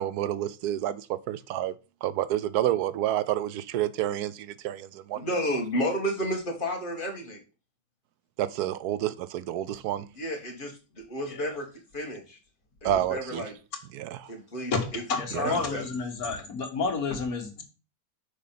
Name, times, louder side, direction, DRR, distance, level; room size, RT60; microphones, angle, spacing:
voice 1, 0.0-1.7 2.0-5.3 8.4-10.1 12.8-13.5 13.9-14.3 15.3-15.6, right 12 dB, 90° right, 1.1 m, -29 dB
voice 2, 5.1-7.4 10.2-11.7 11.9-12.4 12.8-13.5 14.2-15.0 15.4-15.8, equal, 35° left, 2.0 m, -31 dB
voice 3, 11.3-11.6 14.7-17.6, left 4 dB, 70° left, 2.0 m, -30 dB
6.5 x 5.2 x 5.8 m
omnidirectional pair, 1.6 m